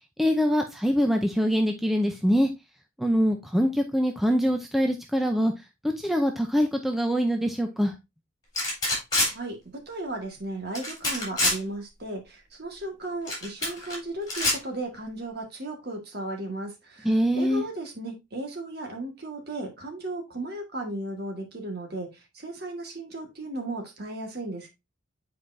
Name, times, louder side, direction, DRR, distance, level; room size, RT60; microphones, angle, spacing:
voice 1, 0.2-2.5 3.0-5.5 6.0-7.9 17.0-17.6, equal, ahead, 0.5 m, -24 dB
sound 1, 8.6-9.3 10.7-11.6 13.3-14.0 14.3-14.6, left 2 dB, 20° left, 3.6 m, -25 dB
voice 2, 9.9-24.7, right 2 dB, 50° right, 1.7 m, -35 dB
8.0 x 4.7 x 2.6 m
head